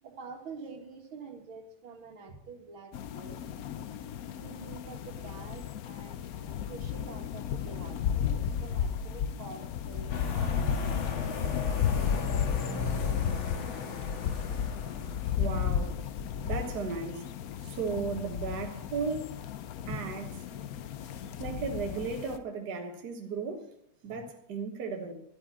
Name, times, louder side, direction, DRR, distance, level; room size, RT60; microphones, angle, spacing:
voice 1, 0.0-3.4 4.4-11.3 19.9-20.1 21.0-21.2 24.1-24.3, right 4 dB, 85° right, 2.4 m, -47 dB
sound 1, 2.9-22.4, left 8 dB, 65° left, 0.9 m, -33 dB
sound 2, 10.1-15.6, left 3 dB, 85° left, 2.3 m, -38 dB
voice 2, 15.2-16.0 16.4-17.2 17.6-19.4 19.9-20.2 20.5-20.8 21.2-23.7 24.0-25.1, right 5 dB, 55° right, 1.8 m, -35 dB
11.5 x 8.8 x 8.2 m
omnidirectional pair, 2.2 m